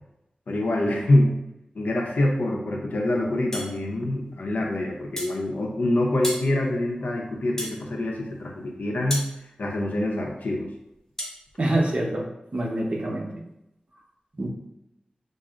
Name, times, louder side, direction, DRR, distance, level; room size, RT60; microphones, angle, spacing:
voice 1, 0.5-1.4 1.7-9.2 9.6-10.7, left 1 dB, 80° left, 0 dB, 0.7 m, -25 dB
sound 1, 3.5-3.7 5.2-5.4 6.2-6.5 7.6-7.8 9.1-9.3 11.2-11.4, equal, 15° left, 0.8 m, -32 dB
voice 2, 11.6-13.4 14.4-14.5, right 1 dB, 45° right, 0 dB, 0.7 m, -26 dB
6.1 x 2.0 x 2.4 m, 0.88 s
wide cardioid pair, 100°, 3 cm